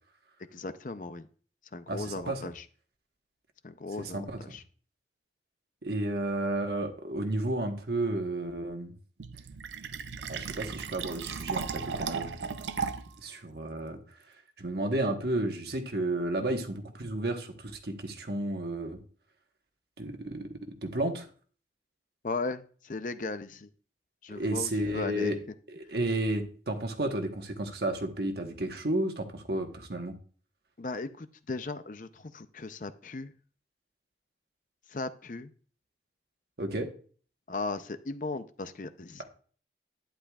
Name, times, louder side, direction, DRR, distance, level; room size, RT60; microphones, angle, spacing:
voice 1, 0.5-1.3 1.7-2.6 3.6-4.6 22.2-23.7 24.2-25.4 30.8-33.3 34.9-35.5 37.5-39.2, left 3 dB, 45° left, 12 dB, 0.6 m, -37 dB
voice 2, 1.9-2.4 4.0-4.6 5.8-8.9 10.3-12.3 13.2-14.0 14.6-19.0 20.0-21.3 24.3-25.4 25.7-30.1 36.6-36.9, right 1 dB, 65° right, 4 dB, 1.3 m, -32 dB
Fill (with liquid), 9.2-13.2, right 5 dB, 85° right, 0.6 m, -36 dB
11.5 x 10.0 x 2.4 m, 0.43 s
head